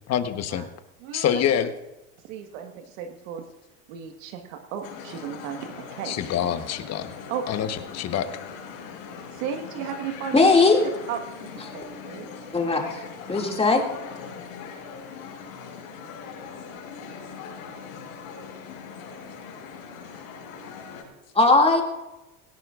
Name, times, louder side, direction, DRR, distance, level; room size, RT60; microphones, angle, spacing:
voice 1, 0.1-0.7 1.1-1.7 6.0-7.1 7.5-8.3, left 9 dB, 40° left, 9 dB, 1.2 m, -26 dB
voice 2, 1.0-1.4 2.3-3.4 3.9-6.2 7.3-7.4 9.3-10.5 10.8-11.2 11.7-12.3, right 8 dB, 75° right, 5 dB, 1.6 m, -34 dB
sound 1, 4.8-21.0, left 6 dB, 75° left, 5.9 m, -40 dB
voice 3, 10.3-10.8 12.5-13.0 13.3-13.8 21.3-21.8, left 3 dB, 15° left, 1 dB, 2.5 m, -18 dB
17.5 x 17.5 x 2.5 m, 1.0 s
supercardioid pair, 105°, 40 cm